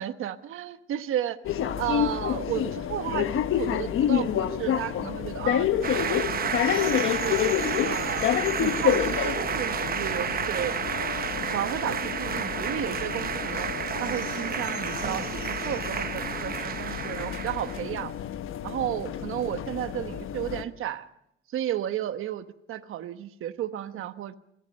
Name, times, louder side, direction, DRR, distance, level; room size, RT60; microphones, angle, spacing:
voice 1, 0.0-6.9 7.2-7.4 7.8-8.3 8.6-10.8 11.5-13.7 14.0-18.1 18.6-21.1 21.5-24.4, right 11 dB, 85° right, 10 dB, 1.2 m, -33 dB
sound 1, 1.4-20.6, left 10 dB, 80° left, 1.2 m, -29 dB
sound 2, 5.8-17.9, right 7 dB, 45° right, 1.0 m, -31 dB
28.0 x 22.0 x 5.4 m, 0.79 s
cardioid pair, 120°, 21 cm